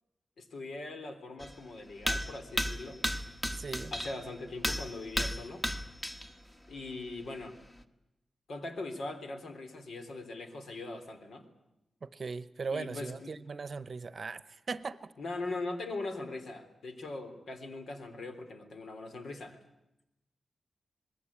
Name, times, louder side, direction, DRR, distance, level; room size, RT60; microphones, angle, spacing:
voice 1, 0.4-3.0 3.9-5.6 6.7-7.6 8.5-11.4 12.7-13.3 15.2-19.6, left 2 dB, 80° left, 6 dB, 3.4 m, -41 dB
sound 1, 1.4-1.5 2.0-4.3 4.6-6.3 6.8-6.9 7.8-7.9, equal, 15° left, 1.2 m, -34 dB
voice 2, 3.6-3.9 12.0-15.1, right 4 dB, 40° right, 15 dB, 0.8 m, -39 dB
27.0 x 20.5 x 8.6 m, 0.93 s
wide cardioid pair, 180°, 0 cm